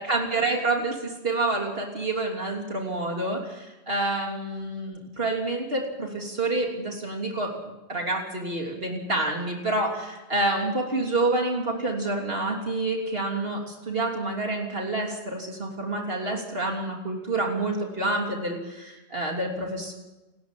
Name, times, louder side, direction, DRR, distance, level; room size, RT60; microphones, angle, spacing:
voice 1, 0.0-19.9, right 2 dB, 60° right, 0 dB, 3.4 m, -28 dB
28.5 x 13.5 x 7.5 m, 1.1 s
omnidirectional pair, 1.1 m